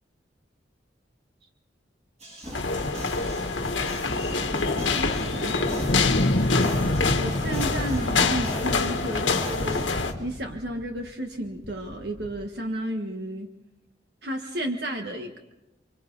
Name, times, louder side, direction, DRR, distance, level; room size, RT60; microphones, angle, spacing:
sound 1, 2.2-10.1, equal, 35° right, 6.9 m, -36 dB
sound 2, 2.5-10.1, left 4 dB, 90° left, 1.6 m, -26 dB
voice 1, 5.0-5.6 6.5-9.9 10.2-13.5 14.2-15.4, right 1 dB, 60° right, 3 dB, 1.6 m, -33 dB
sound 3, 5.9-11.1 11.6-12.4, left 1 dB, 55° left, 1.0 m, -29 dB
30.0 x 24.5 x 4.1 m, 0.98 s
head